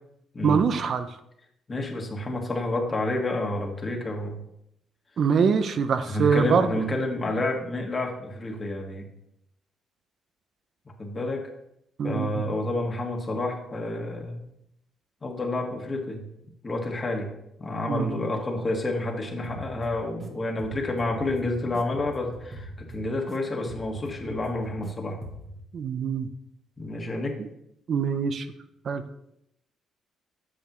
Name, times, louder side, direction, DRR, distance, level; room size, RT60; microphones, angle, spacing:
voice 1, 0.4-1.1 5.2-6.7 12.0-12.3 17.9-18.1 25.7-26.3 27.4-27.5 27.9-28.5 28.9-29.0, right 6 dB, 55° right, 9 dB, 0.6 m, -23 dB
voice 2, 1.7-4.4 6.1-9.1 11.0-11.5 12.0-14.4 15.2-16.2 16.6-17.3 17.6-25.2 26.8-27.4, left 2 dB, 30° left, 1 dB, 1.7 m, -29 dB
sound 1, 19.4-20.3 20.6-23.4 23.7-24.9 25.2-25.6, right 1 dB, 30° right, 1.3 m, -41 dB
8.6 x 6.6 x 3.0 m, 0.80 s
cardioid pair, 90°, 0 cm